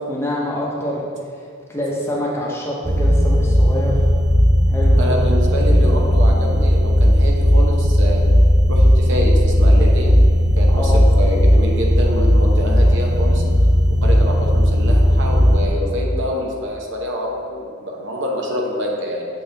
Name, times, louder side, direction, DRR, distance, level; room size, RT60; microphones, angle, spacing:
voice 1, 0.1-1.0 1.7-4.0 4.7-5.2 10.7-11.0, left 1 dB, 10° left, -4 dB, 0.8 m, -25 dB
sound 1, 2.8-15.7, equal, 15° right, 0.4 m, -15 dB
voice 2, 5.0-8.2 8.7-10.1 10.6-13.4 14.0-19.3, equal, 60° right, -1 dB, 0.8 m, -26 dB
7.4 x 4.2 x 3.4 m, 2.2 s
head